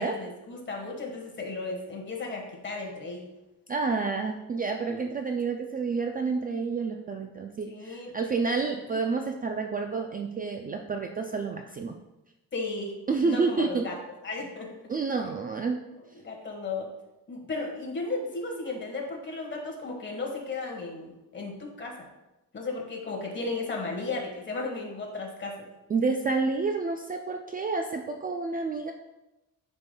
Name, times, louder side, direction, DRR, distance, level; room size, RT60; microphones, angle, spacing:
voice 1, 0.0-3.3 4.8-5.1 7.7-8.1 8.9-9.0 12.5-13.9 14.2-14.8 15.9-16.9 17.3-22.1 22.5-25.7, left 3 dB, 35° left, 0 dB, 1.5 m, -35 dB
voice 2, 3.7-11.9 13.1-13.9 14.9-15.8 25.9-28.9, right 4 dB, 25° right, 4 dB, 0.3 m, -29 dB
9.5 x 5.4 x 2.3 m, 0.99 s
cardioid pair, 145°, 34 cm